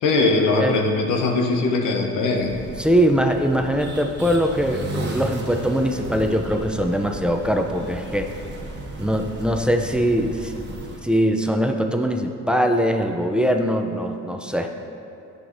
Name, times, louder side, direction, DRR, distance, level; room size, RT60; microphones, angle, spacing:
voice 1, 0.0-2.6, left 3 dB, 90° left, 1 dB, 0.9 m, -20 dB
sound 1, 2.3-11.0, right 1 dB, 35° right, 1.2 m, -34 dB
voice 2, 2.8-8.3 9.0-10.5 11.0-14.7, equal, 5° right, 4 dB, 0.5 m, -22 dB
9.8 x 7.3 x 2.7 m, 2.7 s
cardioid pair, 90°, 30 cm